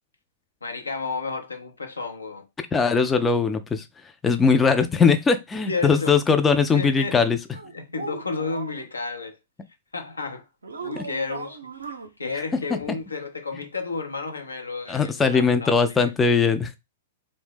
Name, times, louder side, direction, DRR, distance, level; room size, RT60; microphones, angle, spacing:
voice 1, 0.6-2.5 5.7-6.2 6.7-7.2 7.7-9.4 9.9-10.5 10.8-11.6 12.2-16.1, left 4 dB, 80° left, 0.6 m, -32 dB
voice 2, 2.7-3.8 4.2-7.4 11.0-11.1 14.9-16.8, left 5 dB, 15° left, 0.3 m, -20 dB
sound 1, 7.5-8.8 10.6-12.1, right 5 dB, 75° right, 0.5 m, -37 dB
2.6 x 2.1 x 3.4 m
figure-of-eight pair, 105°, 0 cm